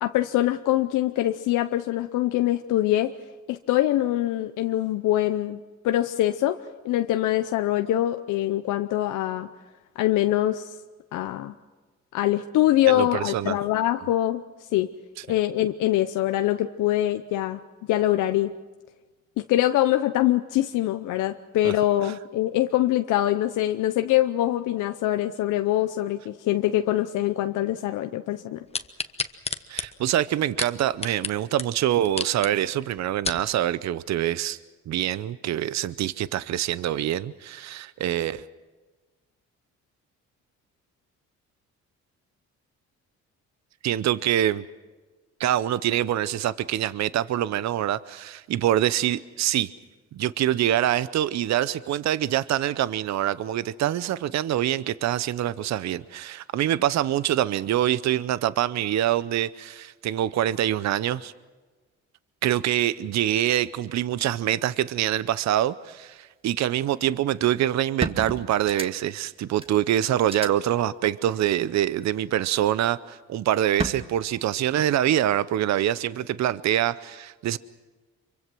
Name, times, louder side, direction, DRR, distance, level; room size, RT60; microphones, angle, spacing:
voice 1, 0.0-3.1 3.5-5.6 5.8-6.6 6.8-9.5 10.0-10.7 11.1-11.5 12.1-14.4 14.7-14.9 15.3-17.6 17.9-18.5 19.4-28.6, left 14 dB, 90° left, 8 dB, 0.8 m, -24 dB
voice 2, 12.9-13.6 21.6-21.7 22.0-22.1 29.7-34.6 34.9-38.5 43.8-44.6 45.4-49.7 50.1-61.3 62.4-77.6, right 12 dB, 65° right, 16 dB, 0.7 m, -25 dB
sound 1, 28.7-31.3 31.6-31.7 32.0-32.5 33.0-33.4 34.1-34.2, left 4 dB, 20° left, 1.1 m, -30 dB
sound 2, 67.4-67.5 68.0-69.2 69.6-69.7 70.2-70.5 71.8-72.3 73.8-73.9, right 2 dB, 20° right, 1.7 m, -31 dB
25.5 x 24.0 x 6.1 m, 1.3 s
cardioid pair, 90°, 30 cm